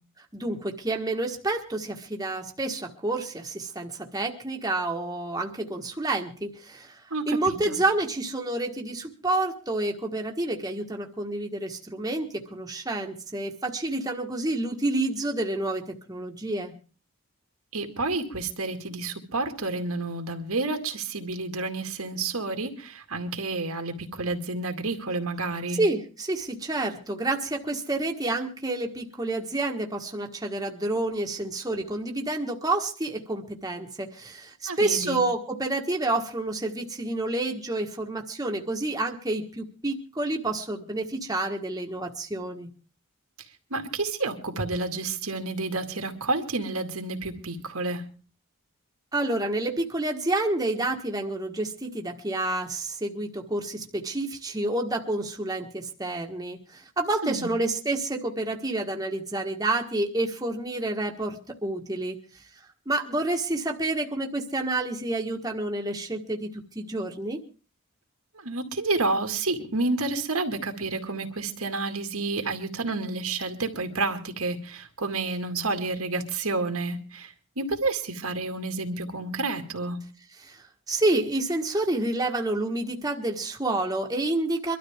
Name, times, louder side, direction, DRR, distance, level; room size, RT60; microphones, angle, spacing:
voice 1, 0.3-15.8 16.1-16.7 25.7-42.7 49.1-62.2 62.9-67.4 80.4-84.8, right 2 dB, 15° right, 2 dB, 1.4 m, -29 dB
voice 2, 7.1-7.8 17.7-25.8 34.7-35.2 43.7-48.0 57.2-57.5 68.4-80.0, right 3 dB, 80° right, 5 dB, 2.2 m, -30 dB
24.0 x 12.5 x 3.6 m, 0.37 s
head